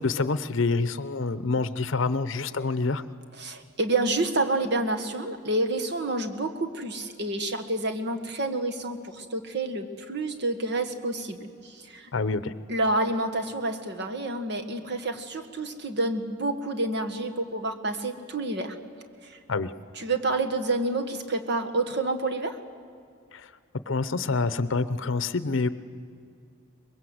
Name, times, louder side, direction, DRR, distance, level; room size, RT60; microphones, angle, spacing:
voice 1, 0.0-3.0 12.1-12.5 19.5-19.7 23.3-23.5 23.9-25.7, left 3 dB, 65° left, 14 dB, 0.7 m, -27 dB
voice 2, 3.4-12.1 12.7-18.8 19.2-19.4 20.0-22.6, right 2 dB, 55° right, 6 dB, 1.6 m, -29 dB
24.0 x 21.5 x 7.9 m, 2.3 s
head